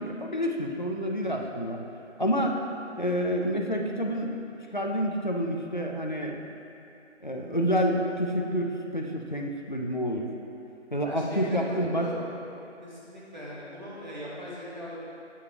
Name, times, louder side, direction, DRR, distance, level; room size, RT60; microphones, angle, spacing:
voice 1, 0.0-1.8 2.2-2.6 3.0-4.3 4.7-6.4 7.2-10.3 10.9-12.1, equal, 40° left, 1 dB, 0.4 m, -28 dB
voice 2, 11.0-12.3 12.8-15.0, left 1 dB, 35° right, -7 dB, 1.5 m, -40 dB
8.0 x 7.0 x 2.8 m, 2.8 s
figure-of-eight pair, 180°, 37 cm